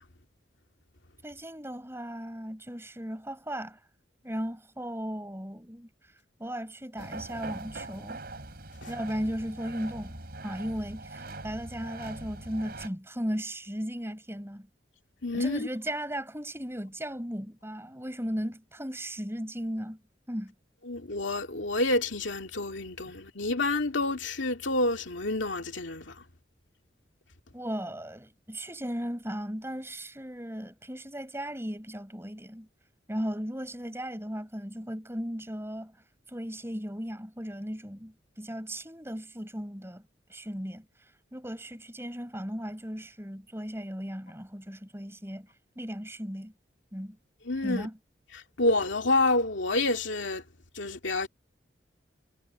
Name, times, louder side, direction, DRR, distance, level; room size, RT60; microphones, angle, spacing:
voice 1, 1.2-3.8 4.2-5.9 6.4-8.2 8.9-10.2 10.4-14.7 15.3-20.0 20.3-20.5 27.5-32.7 33.1-35.9 36.3-40.0 40.3-40.8 41.3-45.5 45.7-46.5 46.9-47.2 47.6-48.0, equal, 15° right, 6.7 m, -36 dB
sound 1, 7.0-12.9, right 2 dB, 55° right, 4.8 m, -42 dB
voice 2, 15.2-15.7 20.9-26.0 47.5-47.9 48.6-50.4 50.8-51.3, left 2 dB, 90° left, 2.4 m, -28 dB
head